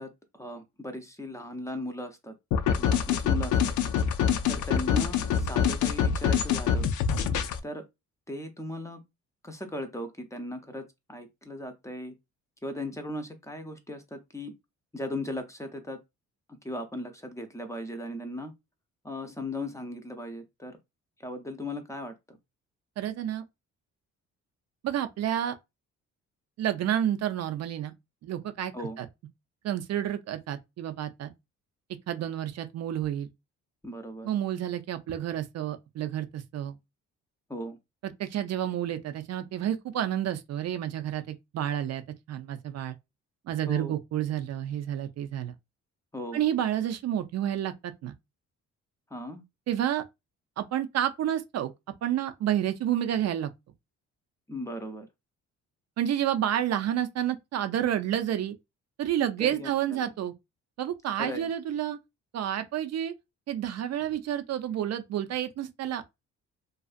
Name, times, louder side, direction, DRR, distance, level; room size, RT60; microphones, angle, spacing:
voice 1, 0.0-2.3 2.8-3.8 4.5-6.9 7.6-7.8 8.3-9.0 9.4-12.1 12.6-14.5 14.9-16.0 16.6-18.5 19.0-20.8 21.2-22.4 28.7-29.0 33.8-34.3 37.5-37.8 43.7-44.0 46.1-46.4 49.1-49.4 54.5-55.1 59.4-60.1 61.2-61.5, left 1 dB, 10° left, 0.6 m, -37 dB
sound 1, 2.5-7.6, left 7 dB, 75° left, 0.5 m, -25 dB
voice 2, 23.0-23.4 24.8-25.6 26.6-27.9 28.2-28.7 29.0-29.1 29.6-31.3 32.1-33.3 34.2-36.8 38.0-42.0 42.3-43.0 43.5-45.5 46.3-48.2 49.7-50.0 50.6-51.7 52.0-53.5 56.0-58.6 59.0-60.3 60.8-62.0 62.3-63.1 63.5-66.0, right 11 dB, 60° right, 0.5 m, -30 dB
2.5 x 2.3 x 2.4 m
cardioid pair, 90°, 30 cm